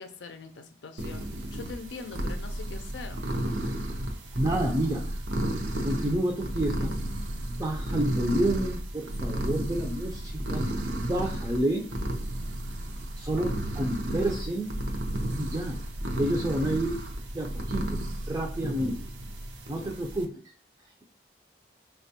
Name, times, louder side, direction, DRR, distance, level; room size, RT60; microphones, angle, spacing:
voice 1, 0.0-3.2, left 4 dB, 85° left, 7 dB, 0.5 m, -42 dB
sound 1, 1.0-20.2, right 1 dB, 90° right, 0.6 m, -33 dB
voice 2, 4.3-5.1 5.8-6.9 7.5-10.6 11.0-11.9 13.2-14.7 15.4-15.8 16.2-17.0 17.3-18.0 18.3-19.1 19.7-20.3, right 1 dB, 20° right, -1 dB, 0.4 m, -29 dB
4.2 x 2.2 x 2.7 m, 0.43 s
head